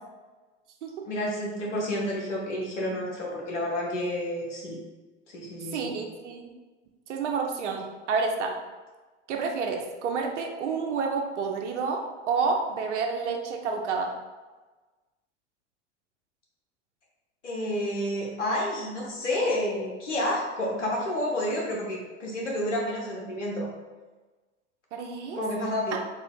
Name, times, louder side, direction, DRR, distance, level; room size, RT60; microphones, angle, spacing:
voice 1, 1.0-4.8 5.3-6.0 17.4-23.7 25.4-26.0, left 1 dB, 90° left, -3 dB, 1.1 m, -30 dB
voice 2, 5.7-6.4 7.1-8.5 9.3-14.1 24.9-25.4 25.9-26.0, right 5 dB, 80° right, 2 dB, 0.6 m, -29 dB
3.7 x 2.4 x 3.6 m, 1.3 s
hypercardioid pair, 85°, 35 cm